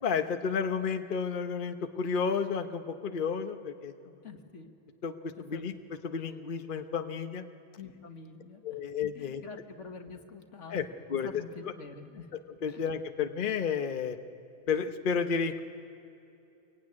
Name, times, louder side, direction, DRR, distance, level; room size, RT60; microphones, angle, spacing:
voice 1, 0.0-4.1 5.0-5.7 6.0-7.4 8.6-9.4 10.7-10.8 11.1-11.3 12.6-14.2 14.7-15.6, left 6 dB, 50° left, 7 dB, 1.0 m, -31 dB
voice 2, 4.2-4.7 5.4-5.8 7.8-8.8 9.2-11.0 11.2-12.3 12.7-12.8, left 5 dB, 90° left, 6 dB, 1.9 m, -46 dB
25.5 x 22.5 x 9.6 m, 2.8 s
omnidirectional pair, 1.2 m